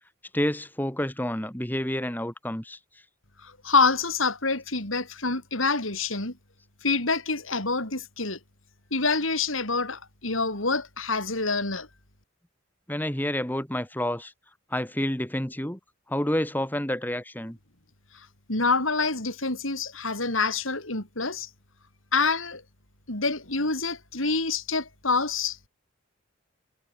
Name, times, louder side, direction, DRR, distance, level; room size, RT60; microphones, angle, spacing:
voice 1, 0.3-2.8 12.9-14.3 14.7-15.8 16.1-17.6, left 1 dB, 10° left, 2.6 m, -29 dB
voice 2, 3.4-6.3 6.8-8.4 8.9-11.9 18.1-21.5 22.1-22.6 23.1-25.7, left 4 dB, 80° left, 7.3 m, -27 dB
head